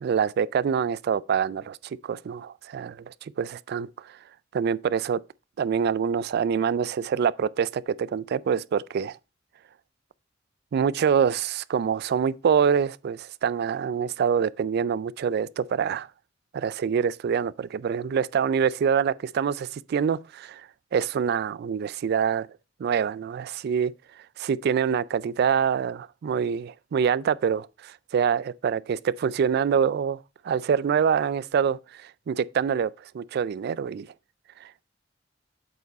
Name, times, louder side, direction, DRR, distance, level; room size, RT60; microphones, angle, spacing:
voice 1, 0.0-4.1 4.5-5.2 5.6-9.2 10.7-16.1 16.5-22.5 22.8-23.9 24.4-30.2 30.4-34.1 34.6-34.8, right 7 dB, 55° right, 0.3 m, -25 dB
8.0 x 4.8 x 4.0 m
head